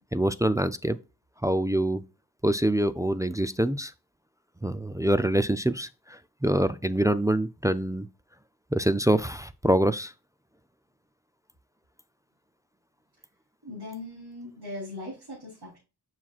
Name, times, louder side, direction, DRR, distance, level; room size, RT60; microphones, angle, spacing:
voice 1, 0.1-1.0 1.4-2.0 2.4-3.9 4.6-8.1 8.7-10.1, right 1 dB, 10° right, 0.4 m, -25 dB
voice 2, 13.6-15.8, left 2 dB, 75° right, 3.5 m, -39 dB
7.2 x 5.8 x 2.4 m
wide cardioid pair, 60°, 39 cm